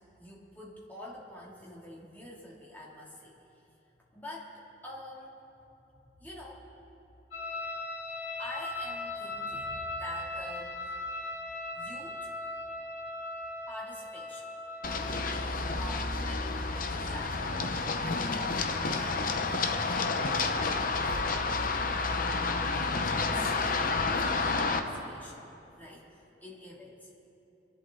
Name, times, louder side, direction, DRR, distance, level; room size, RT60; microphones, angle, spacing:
voice 1, 0.2-3.7 4.1-5.3 5.9-6.7 8.4-11.0 11.7-12.3 13.7-14.6 15.7-21.7 22.9-24.1 24.3-25.5 25.8-27.1, left 1 dB, 10° left, -5 dB, 2.6 m, -47 dB
sound 1, 7.3-15.2, left 2 dB, 65° left, 3.0 m, -38 dB
Run, 14.8-24.8, left 3 dB, 45° left, 0.8 m, -30 dB
26.0 x 11.5 x 3.9 m, 2.9 s
head